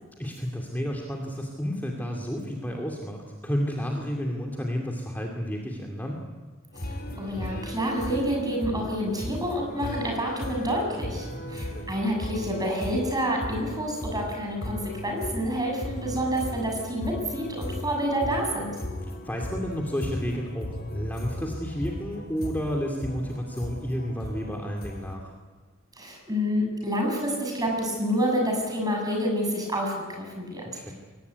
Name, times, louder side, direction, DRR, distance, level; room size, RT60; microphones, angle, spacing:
voice 1, 0.2-6.2 11.2-11.9 19.2-25.3 30.7-30.9, equal, 10° left, 0 dB, 2.5 m, -31 dB
sound 1, 6.7-25.1, left 1 dB, 50° left, 3.8 m, -37 dB
voice 2, 7.2-18.7 26.0-30.9, equal, 20° right, 1 dB, 7.5 m, -28 dB
22.5 x 19.0 x 9.6 m, 1.4 s
head